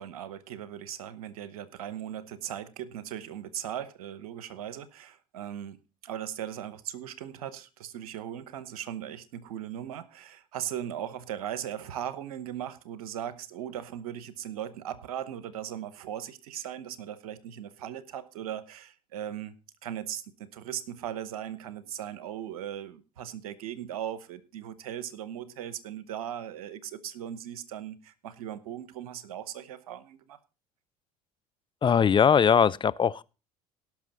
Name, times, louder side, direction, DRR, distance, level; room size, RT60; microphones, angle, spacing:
voice 1, 0.0-5.8 6.0-19.5 19.8-30.4, right 10 dB, 80° right, 0.9 m, -38 dB
voice 2, 31.8-33.2, left 7 dB, 25° left, 0.5 m, -21 dB
18.0 x 6.1 x 4.1 m
hypercardioid pair, 65°, 19 cm